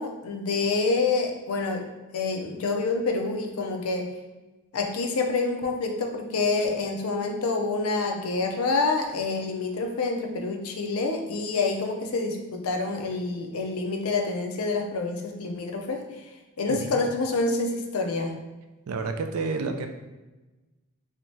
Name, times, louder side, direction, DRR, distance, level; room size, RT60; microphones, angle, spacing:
voice 1, 0.0-1.8 2.1-4.1 4.7-16.0 16.6-18.3, left 3 dB, 85° left, 3 dB, 0.5 m, -27 dB
voice 2, 16.7-17.0 18.9-19.9, right 4 dB, 75° right, 6 dB, 0.4 m, -30 dB
3.4 x 2.8 x 3.2 m, 1.1 s
head